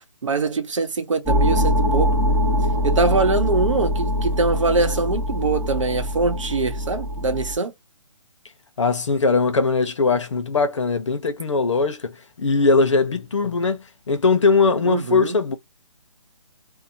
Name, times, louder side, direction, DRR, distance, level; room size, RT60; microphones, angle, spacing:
voice 1, 0.2-2.1 2.8-7.7 14.8-15.4, right 3 dB, 65° right, 1.0 m, -23 dB
sound 1, 1.3-7.5, equal, 5° right, 1.0 m, -22 dB
voice 2, 8.8-15.6, left 4 dB, 60° left, 0.9 m, -20 dB
2.8 x 2.2 x 2.7 m
hypercardioid pair, 180°, 17 cm